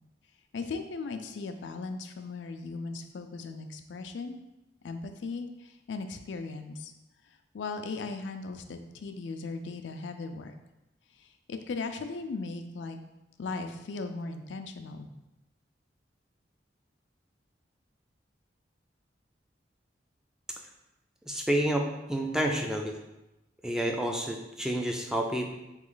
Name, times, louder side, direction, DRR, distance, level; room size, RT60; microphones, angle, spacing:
voice 1, 0.5-4.4 4.8-6.9 7.5-10.5 11.2-13.0 13.4-15.1, left 3 dB, 90° left, 6 dB, 0.4 m, -37 dB
voice 2, 21.3-22.9 23.6-25.5, right 1 dB, 5° right, 2 dB, 0.3 m, -29 dB
3.8 x 3.1 x 3.8 m, 0.96 s
head